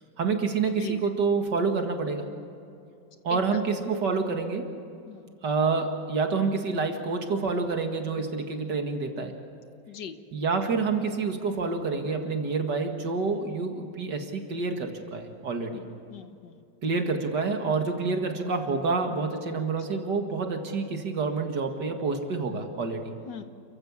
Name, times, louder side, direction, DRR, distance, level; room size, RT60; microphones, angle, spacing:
voice 1, 0.2-2.3 3.2-4.7 5.4-9.3 10.3-15.8 16.8-23.1, right 4 dB, 70° right, 4 dB, 2.5 m, -28 dB
voice 2, 3.3-3.6 5.1-5.3 8.2-8.3 9.9-10.2 11.4-11.5 15.7-15.8 16.1-16.5 19.5-19.6 19.9-20.1 23.3-23.4, left 7 dB, 70° left, 9 dB, 1.8 m, -40 dB
29.0 x 15.0 x 7.3 m, 2.6 s
omnidirectional pair, 1.9 m